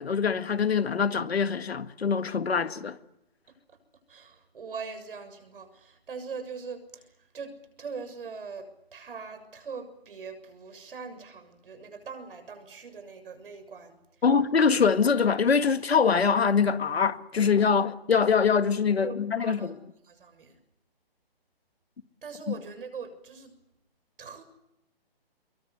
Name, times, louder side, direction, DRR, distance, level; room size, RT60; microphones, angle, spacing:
voice 1, 0.0-3.0 14.2-19.7, left 6 dB, 85° left, 2.0 m, -24 dB
voice 2, 3.5-3.8 4.1-14.0 19.0-19.7 20.0-20.6 22.2-23.6 24.2-24.4, right 5 dB, 65° right, 7.0 m, -42 dB
24.5 x 23.0 x 8.2 m
hypercardioid pair, 165°, 30 cm